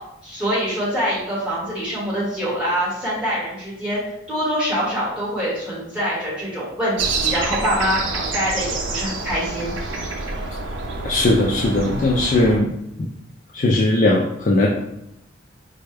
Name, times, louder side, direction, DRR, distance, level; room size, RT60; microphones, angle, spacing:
voice 1, 0.2-4.0 4.3-9.7, equal, 5° right, -9 dB, 1.5 m, -24 dB
sound 1, 7.0-12.6, right 3 dB, 75° right, 0.5 m, -27 dB
voice 2, 11.0-12.7 13.0-13.1 13.5-14.7, left 2 dB, 40° left, -3 dB, 0.3 m, -18 dB
4.2 x 2.3 x 3.3 m, 0.80 s
head